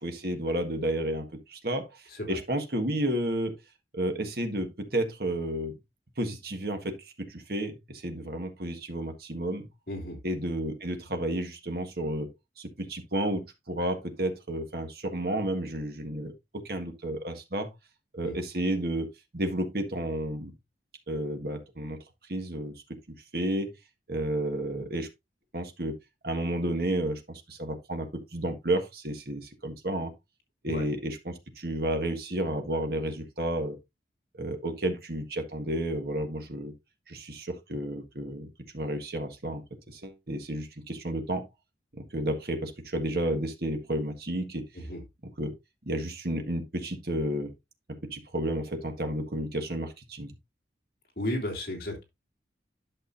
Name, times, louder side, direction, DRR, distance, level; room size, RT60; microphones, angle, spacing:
voice 1, 0.0-3.6 3.9-5.7 6.2-9.7 10.2-12.3 12.6-17.7 18.1-20.5 21.1-22.0 22.3-22.7 23.3-23.7 24.1-25.1 25.5-25.9 26.2-30.1 30.6-33.8 34.4-36.7 37.1-41.5 41.9-44.6 45.4-45.5 45.8-47.5 47.9-50.3, right 1 dB, 55° right, 1.5 m, -31 dB
voice 2, 9.9-10.2 18.2-18.3 30.7-30.9 44.7-45.0 51.2-52.0, left 1 dB, 55° left, 3.0 m, -33 dB
11.5 x 6.1 x 2.6 m
head